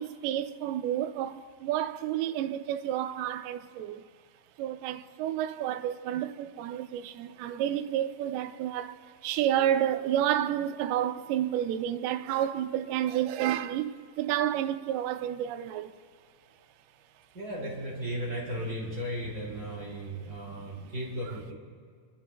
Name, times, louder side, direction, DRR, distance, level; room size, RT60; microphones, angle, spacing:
voice 1, 0.0-4.0 4.6-16.0 20.2-20.9, right 11 dB, 85° right, 2.2 m, -30 dB
voice 2, 17.3-21.5, equal, 25° right, 3.3 m, -35 dB
28.5 x 13.5 x 2.3 m
omnidirectional pair, 5.3 m